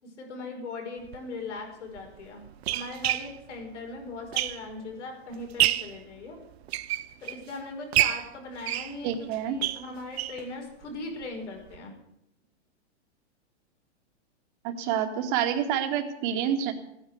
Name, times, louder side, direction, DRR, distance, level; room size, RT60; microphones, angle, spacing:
voice 1, 0.0-2.4 2.7-6.4 7.2-11.9, left 3 dB, 80° left, 2 dB, 5.6 m, -39 dB
sound 1, 1.0-1.2 2.0-4.9 5.3-6.0 6.5-7.5 7.9-10.5 10.8-10.9 11.2-11.3 11.7-11.8, right 14 dB, 60° right, 0.8 m, -29 dB
voice 2, 9.0-9.6 14.6-16.7, right 9 dB, 45° right, 6 dB, 2.2 m, -28 dB
16.0 x 10.0 x 8.2 m, 0.82 s
hypercardioid pair, 145°, 35 cm